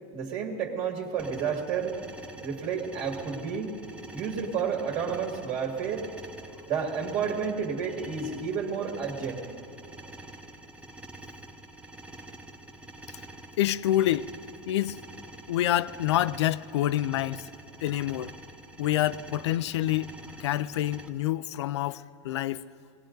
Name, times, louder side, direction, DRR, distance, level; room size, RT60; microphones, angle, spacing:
voice 1, 0.1-2.0 2.4-3.8 4.1-6.1 6.7-9.4, right 6 dB, 45° right, 2.0 m, -31 dB
sound 1, 1.2-21.1, right 2 dB, 10° right, 0.9 m, -46 dB
voice 2, 13.6-14.3 14.7-15.0 15.5-17.5 17.8-18.3 18.8-20.1 20.4-22.6, left 13 dB, 90° left, 0.5 m, -27 dB
21.0 x 17.5 x 3.9 m
supercardioid pair, 130°, 14 cm